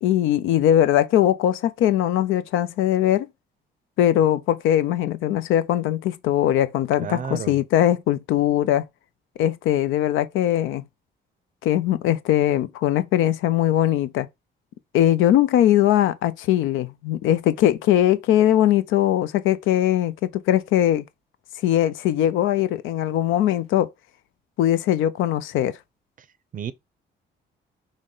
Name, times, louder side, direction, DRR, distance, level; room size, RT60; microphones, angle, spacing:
voice 1, 0.0-3.3 4.0-8.8 9.4-10.8 11.6-14.3 14.9-20.1 20.5-21.0 21.6-23.9 24.6-25.7, left 12 dB, 85° left, 0.4 m, -20 dB
voice 2, 7.0-7.6 26.5-26.7, right 8 dB, 45° right, 0.5 m, -31 dB
6.2 x 2.1 x 3.7 m
cardioid pair, 90°, 20 cm